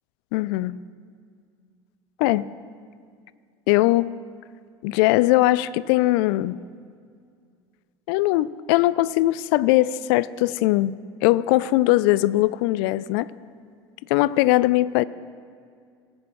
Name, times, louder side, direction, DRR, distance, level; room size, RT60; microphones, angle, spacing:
voice 1, 0.3-0.8 2.2-2.5 3.7-4.1 4.8-6.6 8.1-13.3 14.1-15.0, left 17 dB, 60° left, 18 dB, 0.4 m, -20 dB
19.5 x 8.5 x 3.1 m, 2.2 s
hypercardioid pair, 80°, 14 cm